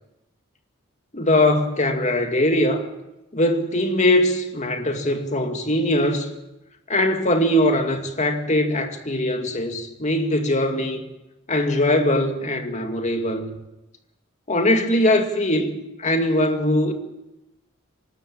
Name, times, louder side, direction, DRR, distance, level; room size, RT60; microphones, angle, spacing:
voice 1, 1.1-2.8 3.3-6.3 6.9-11.0 11.5-13.5 14.5-16.9, left 1 dB, 35° left, 2.3 m, -21 dB
25.5 x 12.5 x 8.8 m
head